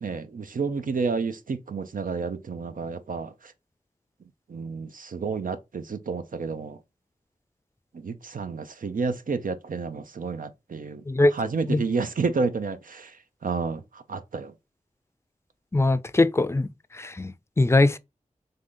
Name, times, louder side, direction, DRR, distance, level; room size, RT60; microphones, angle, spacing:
voice 1, 0.0-3.5 4.5-6.8 7.9-11.0 11.3-14.5, right 4 dB, 85° right, 0.6 m, -30 dB
voice 2, 15.7-16.7 16.9-18.0, left 2 dB, 20° left, 0.4 m, -21 dB
3.8 x 3.3 x 3.7 m
wide cardioid pair, 60°, 14 cm